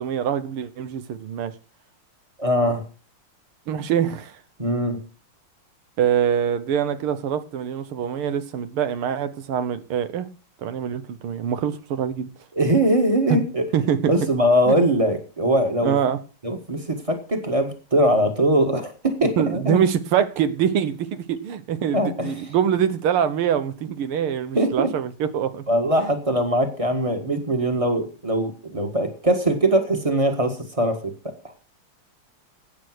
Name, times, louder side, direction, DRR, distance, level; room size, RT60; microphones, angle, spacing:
voice 1, 0.0-1.5 3.7-4.4 6.0-10.3 10.6-12.3 13.3-13.4 13.7-14.1 14.7-14.8 15.8-16.2 19.2-25.6 26.0-26.1, right 8 dB, 85° right, 1.9 m, -24 dB
voice 2, 2.4-2.8 4.6-5.0 12.5-13.7 14.1-16.0 16.4-19.8 21.9-22.3 24.5-24.9 25.7-31.2 31.4-31.5, right 1 dB, 15° right, 1.5 m, -21 dB
12.5 x 8.7 x 6.3 m
omnidirectional pair, 2.3 m